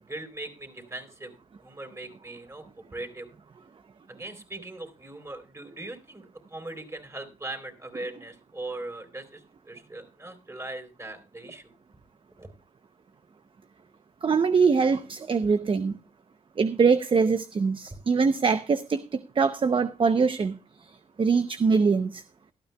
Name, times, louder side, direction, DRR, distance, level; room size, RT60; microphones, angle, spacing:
voice 1, 0.0-1.3 1.6-2.6 2.9-3.3 4.1-11.7 12.4-12.5, right 2 dB, 20° right, 3.8 m, -40 dB
voice 2, 14.2-16.0 16.6-20.9 21.2-22.2, right 5 dB, 40° right, 0.7 m, -23 dB
18.0 x 12.5 x 2.3 m
cardioid pair, 85°, 14 cm